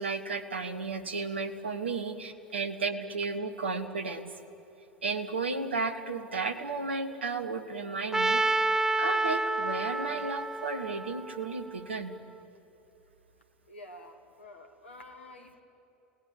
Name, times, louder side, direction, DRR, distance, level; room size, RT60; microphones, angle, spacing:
voice 1, 0.0-4.3 5.0-12.2, right 4 dB, 80° right, 9 dB, 1.6 m, -34 dB
Trumpet, 8.1-12.2, right 2 dB, 10° right, 0.7 m, -29 dB
voice 2, 13.7-15.6, left 1 dB, 80° left, 5 dB, 2.3 m, -49 dB
28.0 x 18.5 x 9.7 m, 3.0 s
figure-of-eight pair, 75°, 6 cm